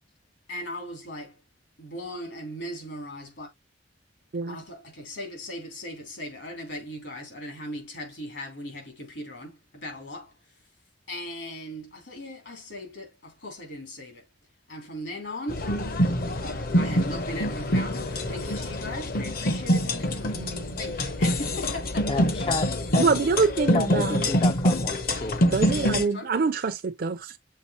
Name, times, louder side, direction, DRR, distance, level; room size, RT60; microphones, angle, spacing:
voice 1, 0.5-1.4 1.8-3.5 4.5-10.7 11.1-14.3 14.7-15.7 16.7-20.5 20.8-22.0 26.0-26.3, left 1 dB, 75° left, 3.0 m, -38 dB
sound 1, 15.5-26.0, equal, 55° left, 0.8 m, -25 dB
voice 2, 20.3-20.7 23.0-24.3 25.4-27.4, right 4 dB, 55° right, 0.5 m, -25 dB
voice 3, 22.1-22.7 22.9-23.1 23.7-23.9 24.3-25.4, left 4 dB, 30° left, 0.3 m, -30 dB
6.6 x 3.3 x 4.3 m
head